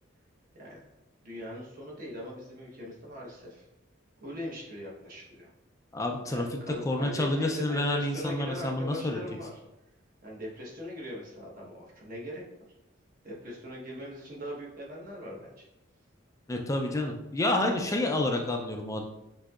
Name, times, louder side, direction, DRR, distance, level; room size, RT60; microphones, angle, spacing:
voice 1, 1.2-3.7 4.2-5.5 6.3-9.6 10.2-12.4 13.2-15.7, equal, 45° right, -3 dB, 1.1 m, -40 dB
voice 2, 5.9-6.5 6.8-9.2 16.5-19.0, left 1 dB, 15° left, 3 dB, 0.3 m, -29 dB
5.9 x 2.7 x 2.4 m, 0.92 s
head